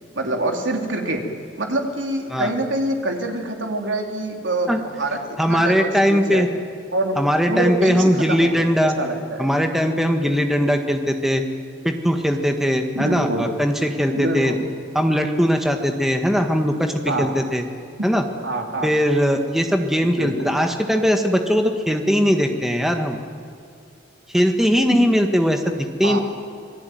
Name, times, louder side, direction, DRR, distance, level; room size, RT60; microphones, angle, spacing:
voice 1, 0.2-1.2 1.6-6.4 6.9-7.2 7.5-9.5 13.0-13.5 14.1-14.6 17.1-17.3 18.4-18.9 20.2-20.6 26.0-26.2, right 2 dB, 75° right, 3 dB, 3.3 m, -25 dB
voice 2, 5.4-6.5 7.2-9.0 9.4-11.4 11.8-14.5 15.0-17.6 18.0-18.2 18.8-23.2 24.3-26.2, equal, ahead, 4 dB, 1.7 m, -20 dB
26.5 x 19.0 x 9.4 m, 2.4 s
head